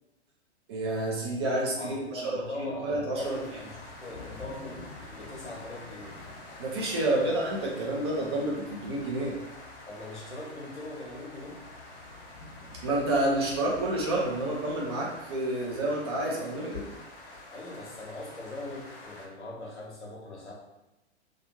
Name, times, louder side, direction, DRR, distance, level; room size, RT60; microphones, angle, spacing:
voice 1, 0.7-3.4 6.6-9.4 12.8-16.9, right 1 dB, 25° right, -3 dB, 0.4 m, -29 dB
voice 2, 1.8-4.9 5.1-6.2 7.0-7.3 9.9-11.6 17.5-20.5, left 2 dB, 85° left, -2 dB, 0.8 m, -40 dB
sound 1, 3.2-19.3, left 2 dB, 50° left, 0.8 m, -46 dB
2.4 x 2.3 x 2.9 m, 0.98 s
figure-of-eight pair, 110°, 34 cm